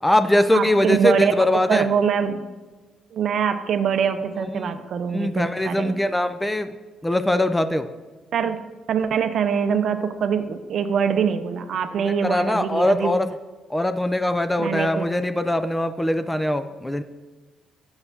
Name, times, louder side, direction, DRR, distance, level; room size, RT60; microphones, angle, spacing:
voice 1, 0.0-1.9 4.4-4.8 5.1-6.7 7.0-7.9 12.0-13.3 13.7-17.0, left 1 dB, 10° left, 10 dB, 0.4 m, -22 dB
voice 2, 0.5-2.4 3.1-6.0 8.3-8.6 8.9-13.2 14.6-15.1, right 7 dB, 65° right, 9 dB, 0.5 m, -23 dB
9.6 x 6.9 x 2.7 m, 1.3 s
cardioid pair, 90°, 0 cm